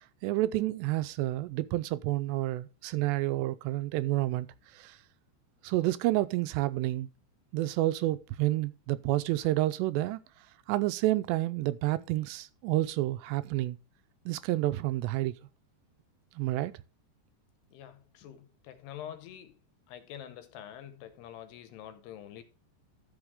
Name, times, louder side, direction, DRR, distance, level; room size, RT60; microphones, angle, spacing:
voice 1, 0.2-4.5 4.7-5.0 5.6-7.1 7.5-10.2 10.7-13.8 14.3-15.3 16.4-16.7, right 16 dB, 85° right, 2.7 m, -29 dB
voice 2, 17.7-19.6 19.9-22.4, left 10 dB, 80° left, 2.7 m, -46 dB
13.0 x 6.2 x 3.5 m
omnidirectional pair, 5.1 m